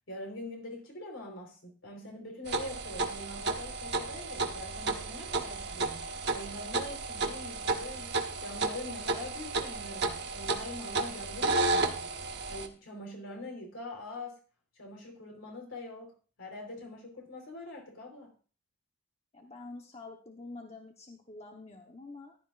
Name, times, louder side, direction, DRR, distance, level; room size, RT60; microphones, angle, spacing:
voice 1, 0.1-12.2 12.5-14.4 14.8-16.1 16.4-18.3, left 2 dB, 70° left, 4.1 m, -43 dB
sound 1, 2.5-12.7, right 3 dB, 50° right, 1.1 m, -33 dB
voice 2, 19.3-22.4, left 3 dB, 30° left, 1.0 m, -47 dB
15.0 x 11.5 x 2.5 m
head